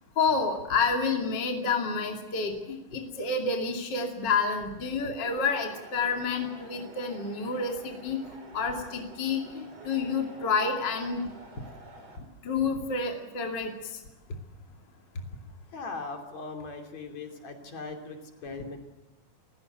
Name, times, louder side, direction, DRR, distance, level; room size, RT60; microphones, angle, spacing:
voice 1, 0.2-8.2 8.5-11.2 12.4-13.7, left 4 dB, 35° left, 3 dB, 3.0 m, -29 dB
sound 1, 5.3-12.2, right 2 dB, 55° right, 5.1 m, -49 dB
voice 2, 15.7-18.8, left 3 dB, 60° left, 4 dB, 4.0 m, -39 dB
29.5 x 16.0 x 8.0 m, 1.0 s
omnidirectional pair, 3.5 m